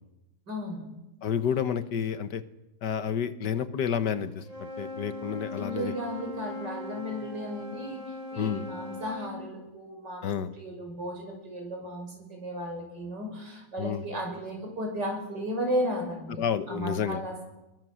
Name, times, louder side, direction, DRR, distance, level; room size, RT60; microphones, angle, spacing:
voice 1, 0.5-0.9 5.6-8.0 8.3-10.3 10.6-16.4 16.7-17.4, equal, 80° right, 2 dB, 6.5 m, -34 dB
voice 2, 1.2-2.4 2.8-5.9 8.3-8.6 10.2-10.5 13.8-14.0 16.4-17.2, left 8 dB, 75° left, 11 dB, 1.7 m, -30 dB
Wind instrument woodwind instrument, 4.4-9.4, left 2 dB, 50° left, 5.8 m, -39 dB
23.5 x 22.0 x 6.3 m, 1.0 s
omnidirectional pair, 1.8 m